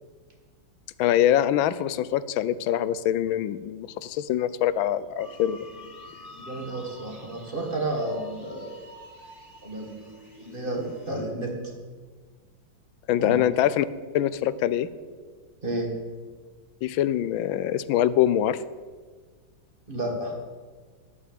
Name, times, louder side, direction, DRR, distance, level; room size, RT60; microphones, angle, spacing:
voice 1, 1.0-5.6 13.1-13.9 14.1-14.9 16.8-18.6, left 11 dB, 90° left, 16 dB, 1.4 m, -24 dB
sound 1, 5.2-11.2, left 1 dB, 10° right, 2.8 m, -47 dB
voice 2, 6.4-8.8 9.6-10.1 10.4-11.5 13.2-13.4 15.6-15.9 19.9-20.3, right 1 dB, 25° right, 1 dB, 2.1 m, -31 dB
10.5 x 8.5 x 8.9 m, 1.5 s
omnidirectional pair, 2.1 m